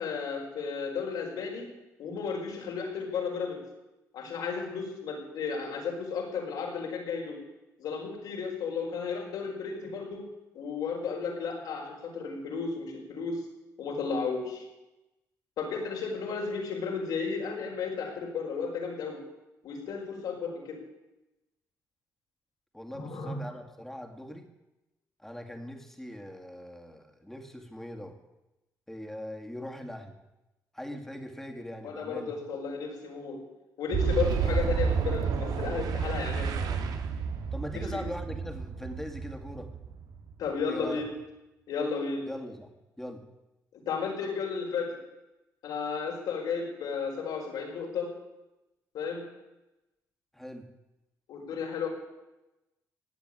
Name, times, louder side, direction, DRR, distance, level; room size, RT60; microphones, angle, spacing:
voice 1, 0.0-1.7 2.0-3.6 4.1-7.4 7.8-10.2 10.5-13.4 13.8-14.6 15.6-19.2 19.6-20.8 22.9-23.4 31.8-33.4 33.8-36.9 37.7-38.0 40.4-41.1 41.7-42.2 43.9-45.0 45.6-48.1 48.9-49.2 51.3-51.9, left 5 dB, 80° left, 0 dB, 5.1 m, -33 dB
voice 2, 22.7-24.5 25.2-28.2 28.9-30.2 30.7-32.3 37.5-39.7 40.7-41.0 42.3-43.2 50.3-50.7, equal, 5° left, 3 dB, 2.3 m, -41 dB
Boom, 33.9-40.5, right 6 dB, 75° right, 1.8 m, -30 dB
17.5 x 8.2 x 9.9 m, 0.99 s
cardioid pair, 95°, 7 cm